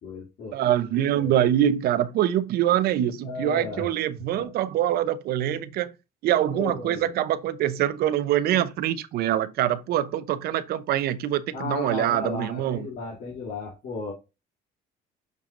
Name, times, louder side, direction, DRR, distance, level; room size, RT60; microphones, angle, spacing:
voice 1, 0.0-0.7 1.1-1.3 3.2-3.9 4.4-4.5 6.5-7.1 11.5-14.1, left 4 dB, 60° left, 2.9 m, -35 dB
voice 2, 0.5-5.9 6.2-12.9, right 11 dB, 65° right, 0.8 m, -24 dB
6.9 x 6.1 x 2.6 m
cardioid pair, 115°, 17 cm